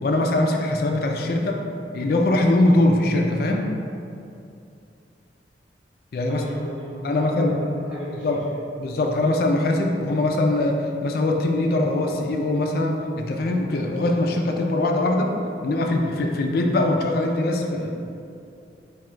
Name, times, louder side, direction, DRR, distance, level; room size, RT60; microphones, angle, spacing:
voice 1, 0.0-1.6 1.9-3.7 6.1-6.4 7.0-7.5 8.2-8.4 8.8-15.4 15.6-17.9, left 2 dB, 55° left, 2 dB, 0.4 m, -22 dB
voice 2, 6.3-8.6, equal, 10° right, -10 dB, 0.7 m, -35 dB
4.9 x 2.3 x 4.3 m, 2.6 s
head